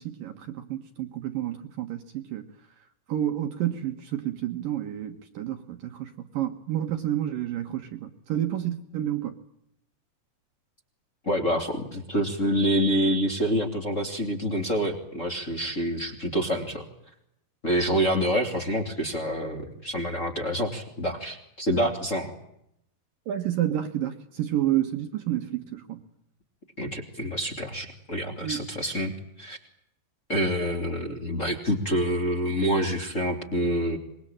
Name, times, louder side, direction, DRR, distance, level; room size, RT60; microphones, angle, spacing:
voice 1, 0.0-2.4 3.1-9.3 23.3-26.0 28.4-28.6, right 12 dB, 65° right, 2.7 m, -30 dB
voice 2, 11.2-16.8 17.6-22.3 26.8-29.1 29.4-29.6 30.3-34.0, equal, 20° left, 2.8 m, -27 dB
25.5 x 22.5 x 9.0 m
omnidirectional pair, 5.0 m